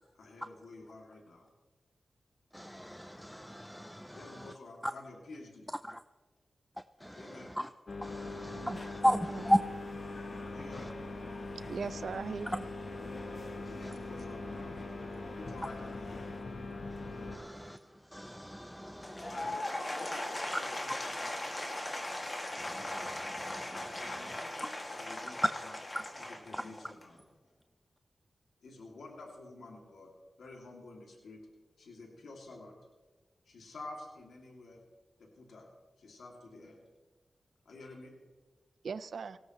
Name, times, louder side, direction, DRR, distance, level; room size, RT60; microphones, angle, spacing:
voice 1, 0.1-1.5 4.1-5.7 7.1-7.5 10.5-11.0 13.7-14.8 15.4-16.3 19.3-21.4 24.0-25.8 26.2-27.2 28.6-30.1 30.4-31.4 31.8-32.7 33.4-34.8 35.2-35.7 36.0-36.8 37.6-38.2, left 2 dB, 90° left, 2.7 m, -50 dB
voice 2, 2.5-4.2 7.0-7.2 8.0-9.6 17.3-17.8 18.1-19.3 22.7-23.9, equal, 5° left, 0.5 m, -34 dB
sound 1, 7.9-17.4, left 2 dB, 55° left, 1.2 m, -41 dB
voice 3, 8.5-9.5 11.7-12.7 38.8-39.4, right 5 dB, 80° right, 0.5 m, -40 dB
Applause / Crowd, 19.0-27.2, left 1 dB, 35° left, 2.3 m, -39 dB
19.0 x 17.0 x 3.2 m
cardioid pair, 55°, 0 cm